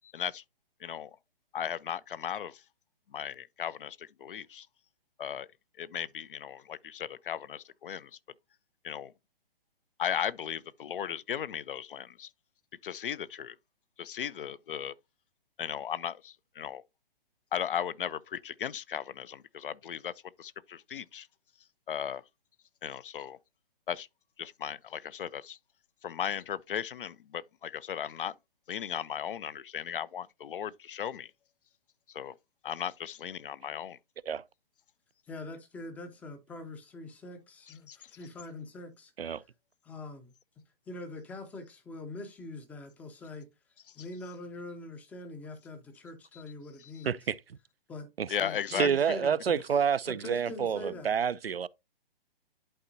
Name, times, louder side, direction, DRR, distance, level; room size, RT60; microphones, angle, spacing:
voice 1, 0.0-0.4 0.8-1.1 1.5-2.6 3.1-4.7 5.2-5.5 5.8-8.2 8.8-9.1 10.0-12.3 12.8-13.6 14.0-14.9 15.6-16.8 17.5-20.1 20.4-21.3 21.9-22.2 22.8-23.4 23.9-24.1 24.4-25.6 26.0-28.3 28.7-31.3 32.1-32.3 32.6-34.0 37.9-38.1 43.9-44.0 46.3-46.4 46.8-47.0 48.3-48.9, left 9 dB, 65° left, 0.5 m, -36 dB
voice 2, 35.3-39.1 39.8-40.3 40.9-43.5 44.0-47.2 47.9-48.1 48.4-49.6 50.1-51.1, left 2 dB, 5° left, 0.5 m, -43 dB
voice 3, 47.0-47.4 48.2-48.3 48.7-51.7, right 7 dB, 90° right, 0.5 m, -28 dB
11.0 x 4.3 x 2.6 m
figure-of-eight pair, 130°, 29 cm